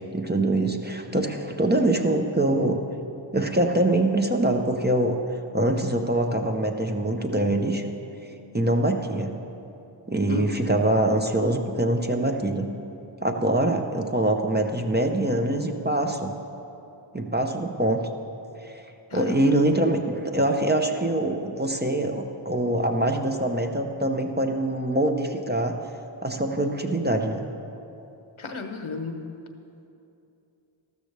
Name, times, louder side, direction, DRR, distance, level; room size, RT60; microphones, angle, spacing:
voice 1, 0.0-2.8 3.3-5.2 5.5-7.8 8.5-9.3 10.1-12.7 13.2-16.3 17.1-18.0 18.6-18.8 19.1-25.8 26.2-27.4, right 1 dB, 20° right, 3 dB, 0.8 m, -24 dB
voice 2, 19.1-19.5 28.4-29.3, left 4 dB, 80° left, 5 dB, 1.0 m, -33 dB
14.0 x 13.0 x 3.4 m, 2.8 s
wide cardioid pair, 55°, 48 cm